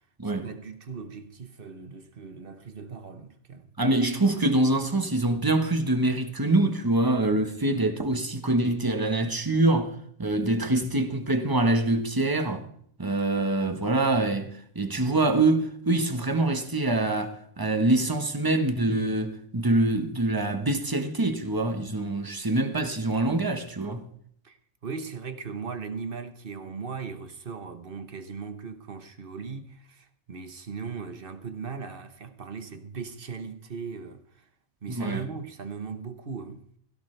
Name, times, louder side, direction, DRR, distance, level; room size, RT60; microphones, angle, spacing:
voice 1, 0.2-3.7 24.4-24.6 24.8-34.5 34.8-36.7, right 5 dB, 45° right, 1.2 m, -38 dB
voice 2, 3.8-12.6 13.0-24.1 34.9-35.2, right 2 dB, 15° right, 1.2 m, -25 dB
16.5 x 16.5 x 3.4 m
omnidirectional pair, 1.5 m